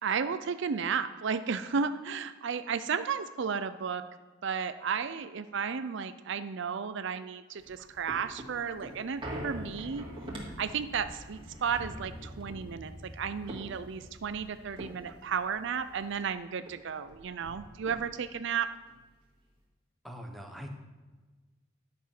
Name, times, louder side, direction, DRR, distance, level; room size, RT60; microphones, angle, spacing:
voice 1, 0.0-4.0 4.4-10.1 10.6-18.7, right 6 dB, 65° right, 11 dB, 0.5 m, -33 dB
sound 1, 7.6-16.3 16.7-16.8 17.0-18.4 18.9-19.0, equal, 25° right, 2.5 m, -44 dB
voice 2, 20.0-20.7, equal, ahead, 3 dB, 1.2 m, -42 dB
11.0 x 6.9 x 5.9 m, 1.3 s
head